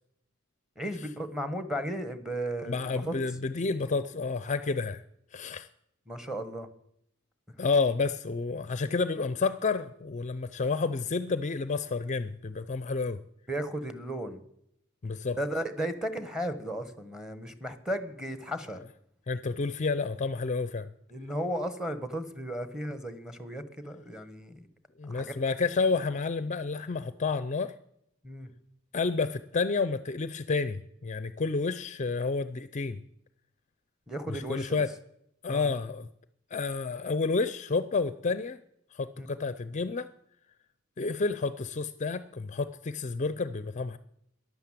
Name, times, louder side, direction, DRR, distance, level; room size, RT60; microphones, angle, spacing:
voice 1, 0.8-3.2 6.1-6.7 13.5-14.4 15.3-18.8 21.1-24.6 25.1-25.4 28.2-28.5 34.1-34.8 35.5-35.7 39.2-39.3, right 1 dB, 5° right, 11 dB, 1.2 m, -35 dB
voice 2, 2.7-5.0 5.3-5.7 7.6-13.2 15.0-15.4 19.3-20.9 25.0-27.7 28.9-33.0 34.3-34.9 35.4-36.1 36.5-38.6 38.9-40.1 41.0-44.0, left 4 dB, 35° left, 13 dB, 0.5 m, -30 dB
12.5 x 11.0 x 7.5 m, 0.76 s
head